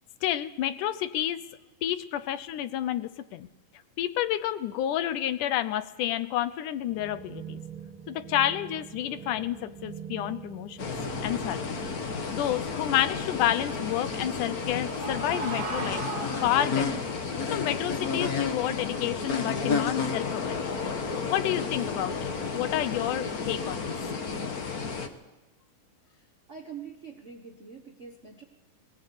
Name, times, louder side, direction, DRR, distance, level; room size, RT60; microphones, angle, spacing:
voice 1, 0.2-1.4 1.8-3.5 4.0-7.6 8.1-10.9 11.2-11.7 12.3-16.0 16.4-17.1 17.5-20.7 21.3-23.9, left 12 dB, 75° left, 14 dB, 2.3 m, -30 dB
sound 1, 6.9-12.5, right 8 dB, 50° right, 2.1 m, -43 dB
sound 2, 10.8-25.1, left 5 dB, 50° left, 1.1 m, -32 dB
sound 3, 14.1-17.1, right 3 dB, 25° right, 2.3 m, -37 dB
voice 2, 26.5-28.4, right 6 dB, 65° right, 2 dB, 0.7 m, -44 dB
22.5 x 18.0 x 8.3 m, 1.1 s
omnidirectional pair, 3.8 m